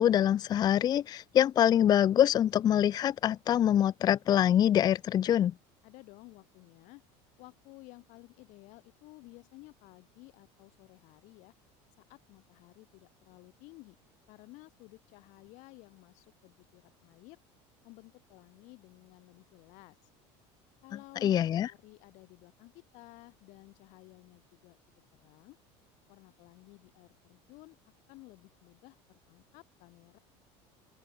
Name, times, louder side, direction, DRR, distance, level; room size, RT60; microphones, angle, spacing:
voice 1, 0.0-5.5 21.2-21.7, left 10 dB, 30° left, 0.6 m, -25 dB
voice 2, 5.8-7.0 7.4-11.5 12.1-14.0 14.3-17.4 17.8-20.1 20.8-24.8 25.2-25.6 26.1-27.8 28.1-30.2, left 23 dB, 60° left, 3.6 m, -54 dB
open air
cardioid pair, 150°, 14 cm